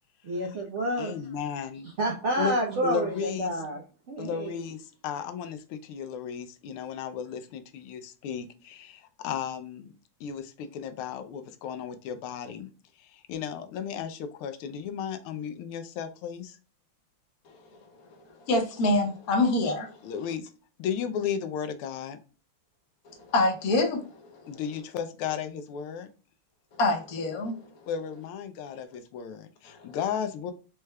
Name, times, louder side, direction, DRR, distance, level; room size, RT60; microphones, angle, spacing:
voice 1, 0.2-1.2 1.8-3.8 4.1-4.7, right 1 dB, 85° right, 0.6 m, -29 dB
voice 2, 1.0-1.9 2.4-2.6 2.8-3.5 4.2-9.9 10.2-12.7 13.3-16.6 20.0-20.5 20.8-22.2 24.5-26.1 27.9-30.5, left 8 dB, 85° left, 1.5 m, -34 dB
voice 3, 18.5-19.9 20.3-20.4 23.1-24.1 26.8-27.6, left 2 dB, 60° left, 1.0 m, -25 dB
4.3 x 3.3 x 2.2 m
omnidirectional pair, 2.3 m